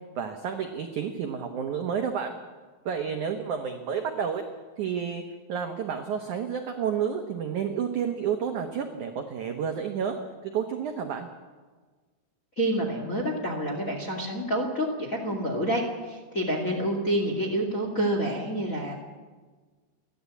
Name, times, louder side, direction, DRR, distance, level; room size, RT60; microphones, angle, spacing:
voice 1, 0.2-2.4 2.9-4.4 4.8-5.2 5.5-10.2 10.5-11.3, right 7 dB, 75° right, 4 dB, 1.8 m, -30 dB
voice 2, 12.6-18.9, right 1 dB, 30° left, 1 dB, 1.6 m, -28 dB
30.0 x 11.5 x 8.4 m, 1.4 s
omnidirectional pair, 5.3 m